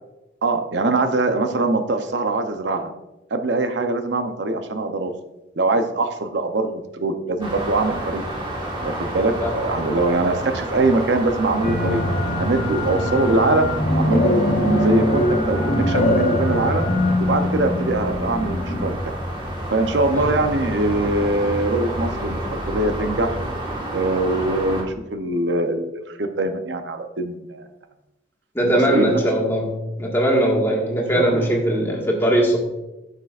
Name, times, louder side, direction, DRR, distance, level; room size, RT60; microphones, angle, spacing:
voice 1, 0.4-2.9 3.3-5.1 5.6-8.2 8.8-12.0 12.4-13.7 13.9-14.4 14.7-16.9 17.2-19.1 19.7-23.4 23.9-27.7 28.6-29.2 31.1-31.5, right 2 dB, 80° right, 7 dB, 0.7 m, -22 dB
sound 1, 7.4-24.8, right 1 dB, 25° right, 1.4 m, -29 dB
sound 2, 11.6-18.9, left 1 dB, 45° left, 1.0 m, -22 dB
voice 2, 28.5-32.6, right 1 dB, 15° left, -2 dB, 1.6 m, -20 dB
13.5 x 6.6 x 2.4 m, 0.99 s
head